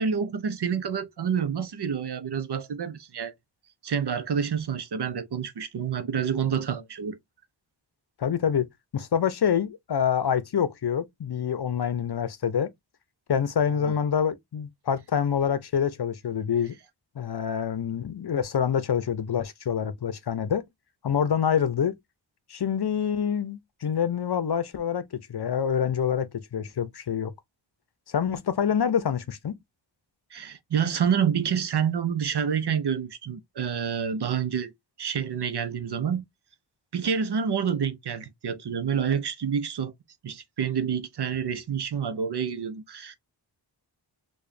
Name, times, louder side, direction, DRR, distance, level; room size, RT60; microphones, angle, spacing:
voice 1, 0.0-3.3 3.8-7.2 13.8-13.9 30.3-34.7 35.0-36.3 36.9-39.9 40.2-43.2, right 7 dB, 60° right, 0.7 m, -28 dB
voice 2, 8.2-8.7 8.9-12.7 13.3-16.7 17.2-20.6 21.0-21.9 22.5-27.3 28.1-29.6, left 8 dB, 55° left, 0.6 m, -26 dB
4.8 x 2.3 x 2.6 m
wide cardioid pair, 55°, 46 cm